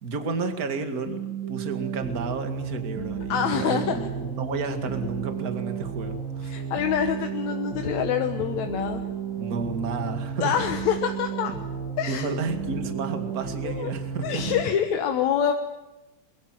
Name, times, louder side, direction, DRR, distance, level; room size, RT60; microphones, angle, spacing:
voice 1, 0.0-6.6 9.4-10.5 11.5-11.6 12.1-14.6, right 4 dB, 30° right, 7 dB, 2.1 m, -31 dB
sound 1, 1.1-14.6, right 7 dB, 85° right, 4.7 m, -33 dB
voice 2, 3.3-4.1 6.4-9.0 10.4-11.5 12.0-12.3 13.6-13.9 14.2-15.5, left 8 dB, 65° left, 6 dB, 2.2 m, -26 dB
23.0 x 22.5 x 9.2 m, 1.0 s
omnidirectional pair, 4.0 m